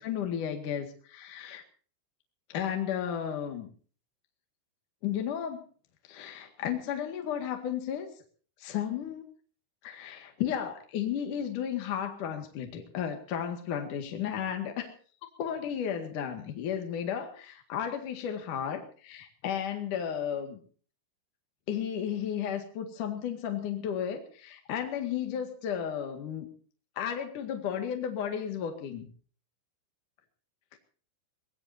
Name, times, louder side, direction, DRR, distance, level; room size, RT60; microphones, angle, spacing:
voice 1, 0.0-1.6 2.5-3.7 5.0-5.6 6.1-8.1 8.6-9.2 9.8-14.9 15.4-20.6 21.7-26.5 27.0-29.1 30.7-30.8, left 9 dB, 50° left, 5 dB, 2.8 m, -33 dB
24.5 x 18.5 x 2.8 m, 0.42 s
omnidirectional pair, 5.7 m